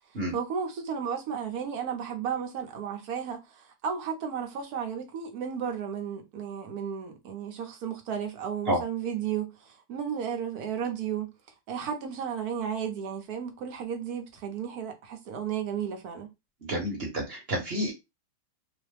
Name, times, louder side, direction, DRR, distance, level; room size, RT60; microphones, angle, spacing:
voice 1, 0.3-11.3 11.7-16.3, right 7 dB, 70° right, 1.2 m, -33 dB
voice 2, 16.6-17.9, equal, 40° right, 1.2 m, -29 dB
3.1 x 2.1 x 3.2 m
omnidirectional pair, 1.8 m